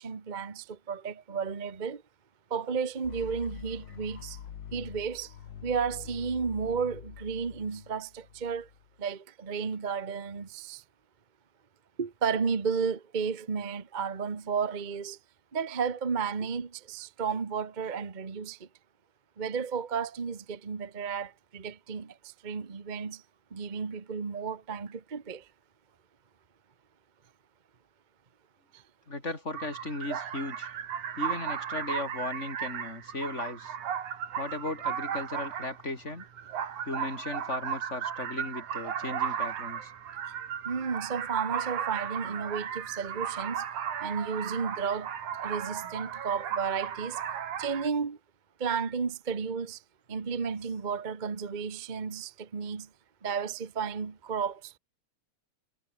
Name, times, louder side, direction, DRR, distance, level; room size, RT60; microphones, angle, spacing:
voice 1, 0.0-2.0 2.5-4.4 4.7-5.3 5.6-8.7 9.0-10.8 12.0-15.2 15.5-18.7 19.4-22.1 22.4-23.2 23.5-25.4 28.7-28.8 40.6-43.6 44.0-45.1 45.4-47.2 47.6-48.2 48.6-49.8 50.1-52.9 53.2-54.8, right 6 dB, 60° right, 0.4 m, -33 dB
sound 1, 3.0-9.0, left 9 dB, 50° left, 1.5 m, -45 dB
voice 2, 29.1-30.7 31.2-33.7 34.4-36.3 36.9-39.9, left 2 dB, 20° left, 5.2 m, -36 dB
sound 2, 29.5-47.9, right 8 dB, 85° right, 3.7 m, -35 dB
omnidirectional pair, 3.4 m